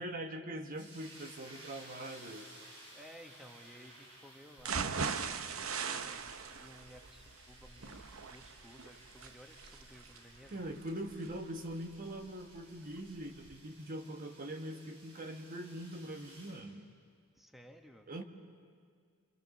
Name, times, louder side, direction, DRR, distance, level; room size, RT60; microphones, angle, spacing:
voice 1, 0.0-2.5 10.5-16.8 18.1-18.2, right 1 dB, 40° right, 6 dB, 1.1 m, -42 dB
sound 1, 0.7-16.6, right 1 dB, 85° right, 6.0 m, -57 dB
voice 2, 2.9-10.7 17.3-18.1, equal, ahead, 4 dB, 1.5 m, -56 dB
sound 2, 4.6-12.6 13.0-13.1 13.4-13.5, right 5 dB, 70° right, 0.9 m, -40 dB
27.5 x 26.5 x 7.1 m, 2.1 s
head